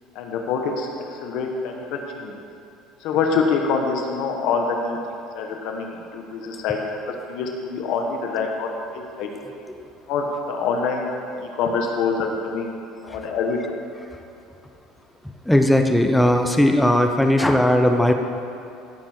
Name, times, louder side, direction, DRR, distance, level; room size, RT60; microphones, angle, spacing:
voice 1, 0.1-2.3 3.0-5.0 5.3-6.8 7.0-9.3 10.1-11.1 11.4-12.7 13.0-13.8, left 5 dB, 65° left, 2 dB, 1.3 m, -25 dB
voice 2, 15.5-18.1, left 1 dB, 5° left, 5 dB, 0.9 m, -17 dB
16.5 x 6.9 x 4.6 m, 2.7 s
cardioid pair, 120°, 0 cm